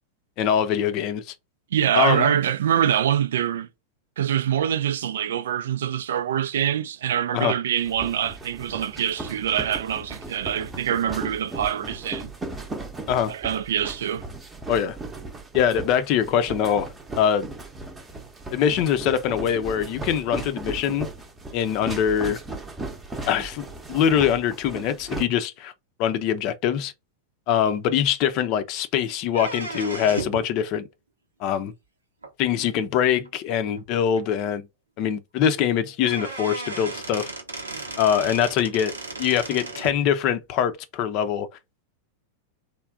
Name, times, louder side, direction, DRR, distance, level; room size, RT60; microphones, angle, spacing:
voice 1, 0.4-1.3 1.9-2.3 7.3-7.6 13.1-13.3 14.7-15.0 15.5-17.5 18.5-21.1 21.5-22.4 23.3-25.7 26.0-26.9 27.5-30.9 31.4-31.7 32.4-34.7 35.0-37.3 38.0-38.9 39.2-41.5, left 9 dB, 40° left, 0.5 m, -23 dB
voice 2, 1.7-3.7 4.2-12.3 13.3-14.2, right 10 dB, 60° right, 0.4 m, -24 dB
sound 1, 7.8-25.2, right 3 dB, 15° right, 0.8 m, -37 dB
sound 2, 29.3-30.5 32.2-32.3 33.3-33.4 33.8-33.9 34.2-34.3 35.6-35.7 36.0-40.0, right 3 dB, 80° right, 0.8 m, -34 dB
3.2 x 2.2 x 3.6 m
figure-of-eight pair, 90°, 0 cm